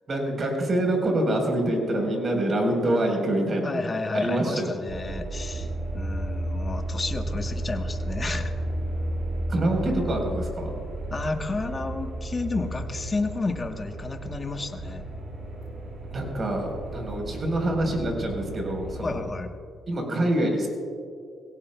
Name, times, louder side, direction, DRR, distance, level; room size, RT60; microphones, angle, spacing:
voice 1, 0.1-4.8 5.5-5.6 9.5-10.7 16.1-19.2 19.9-20.7, right 1 dB, 40° right, 2 dB, 4.1 m, -26 dB
voice 2, 3.6-8.5 11.1-15.0 19.0-19.5, left 3 dB, 30° left, 5 dB, 1.1 m, -31 dB
sound 1, 4.9-19.3, right 1 dB, 60° right, 3.9 m, -33 dB
21.5 x 17.0 x 2.3 m, 2.2 s
cardioid pair, 90°, 0 cm